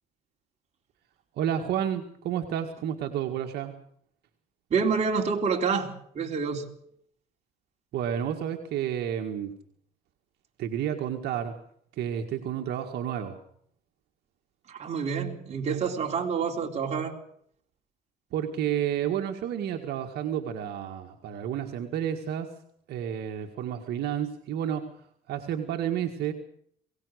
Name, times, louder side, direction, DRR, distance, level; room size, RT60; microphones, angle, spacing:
voice 1, 1.4-3.7 7.9-9.5 10.6-11.6 12.0-13.4 18.3-22.5 22.9-24.9 25.3-26.3, right 9 dB, 75° right, 3 dB, 1.9 m, -30 dB
voice 2, 4.7-5.9 6.1-6.7 14.7-17.2, right 5 dB, 40° right, 1 dB, 4.2 m, -27 dB
22.5 x 18.5 x 6.5 m, 0.65 s
cardioid pair, 110°, 17 cm